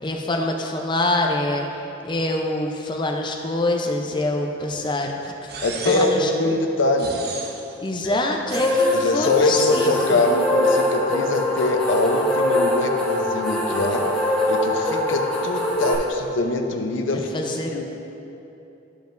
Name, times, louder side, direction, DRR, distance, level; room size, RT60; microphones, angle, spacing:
voice 1, 0.0-1.7 2.0-5.5 5.8-6.6 7.8-10.2 17.3-17.8, left 2 dB, 25° left, 2 dB, 0.6 m, -25 dB
sound 1, 5.5-6.3 7.0-7.7 8.5-9.0 9.5-9.8, right 4 dB, 55° right, 0.7 m, -35 dB
voice 2, 5.6-7.2 8.0-8.2 8.9-14.1 14.5-17.3 17.7-17.8, left 2 dB, 90° left, 4 dB, 0.7 m, -23 dB
sound 2, 8.5-16.0, left 1 dB, 5° left, 1.1 m, -23 dB
12.5 x 5.2 x 2.6 m, 2.9 s
head